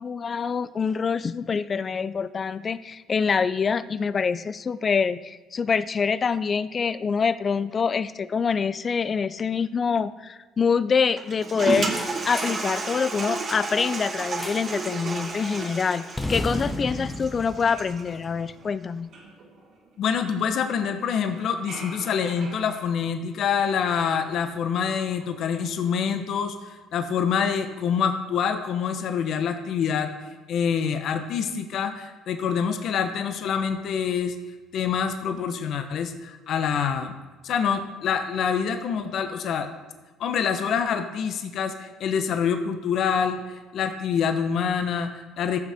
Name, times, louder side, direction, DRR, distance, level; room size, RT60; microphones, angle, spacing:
voice 1, 0.0-11.9 12.2-19.1, left 5 dB, 40° left, 15 dB, 0.4 m, -25 dB
Toilet flush, 11.2-18.1, right 3 dB, 40° right, 1.3 m, -32 dB
sound 1, 11.7-12.7 14.4-14.8 15.1-15.4 16.2-18.5, left 1 dB, 15° left, 0.9 m, -34 dB
sound 2, 17.4-20.5 20.9-24.8 25.1-25.8, right 2 dB, 60° right, 2.6 m, -47 dB
voice 2, 20.0-30.1 30.5-34.4 34.7-37.1 37.4-39.7 40.2-45.6, left 7 dB, 60° left, 7 dB, 0.9 m, -26 dB
14.0 x 6.3 x 3.5 m, 1.2 s
supercardioid pair, 80°, 0 cm